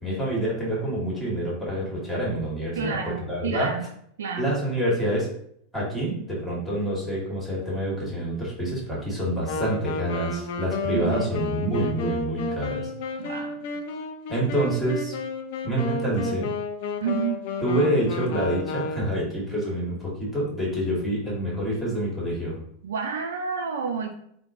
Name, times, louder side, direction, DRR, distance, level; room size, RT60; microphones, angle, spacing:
voice 1, 0.0-3.7 4.4-5.3 5.7-12.9 14.3-15.1 15.6-16.5 17.6-22.6, right 1 dB, 5° left, -6 dB, 1.4 m, -27 dB
voice 2, 2.7-3.8 4.2-4.6 10.9-11.2 13.2-13.6 17.0-17.4 22.8-24.1, right 6 dB, 80° right, 4 dB, 0.3 m, -30 dB
Wind instrument woodwind instrument, 9.4-19.3, left 3 dB, 65° left, 0.3 m, -31 dB
2.9 x 2.0 x 2.5 m, 0.70 s
hypercardioid pair, 95°, 0 cm